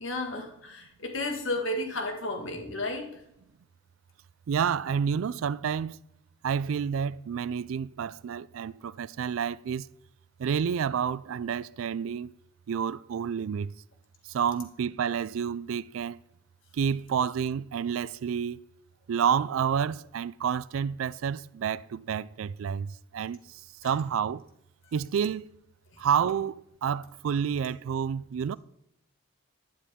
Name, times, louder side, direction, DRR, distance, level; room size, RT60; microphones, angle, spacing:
voice 1, 0.0-3.2 23.8-24.0, left 1 dB, 70° left, 1.7 m, -33 dB
voice 2, 4.5-6.0 6.4-9.9 10.4-12.3 12.7-13.7 14.2-16.2 16.7-18.6 19.1-24.4 24.9-25.5 26.0-28.6, right 7 dB, 85° right, 0.3 m, -29 dB
11.5 x 10.0 x 3.6 m
head